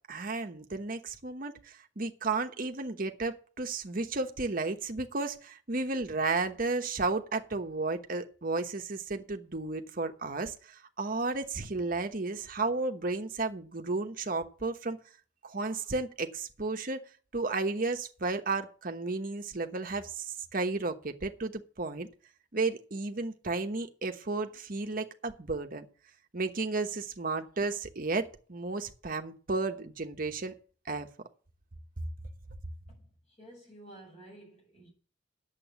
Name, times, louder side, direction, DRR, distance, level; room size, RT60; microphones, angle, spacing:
voice 1, 0.1-15.0 15.4-17.0 17.3-21.5 21.8-22.1 22.5-25.9 26.3-30.6 30.9-31.1, right 3 dB, 45° right, 1.1 m, -33 dB
voice 2, 32.9-34.9, right 1 dB, 35° left, 6.6 m, -52 dB
9.3 x 7.4 x 7.0 m
head